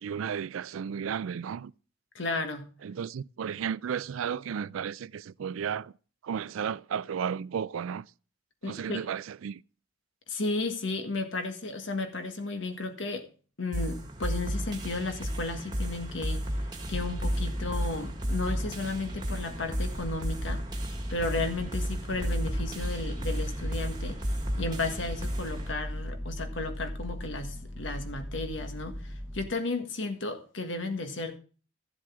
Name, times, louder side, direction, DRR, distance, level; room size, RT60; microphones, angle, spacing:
voice 1, 0.0-1.7 2.8-5.9 6.2-8.1 8.6-9.6, right 7 dB, 85° right, 0.4 m, -33 dB
voice 2, 2.2-2.7 8.6-9.0 10.3-13.3 13.6-16.5 16.9-20.6 21.1-24.2 24.6-31.4, left 3 dB, 70° left, 1.6 m, -34 dB
sound 1, 13.7-25.7, equal, 20° right, 1.6 m, -34 dB
sound 2, 16.9-29.5, equal, ahead, 0.9 m, -37 dB
14.0 x 7.6 x 3.6 m
head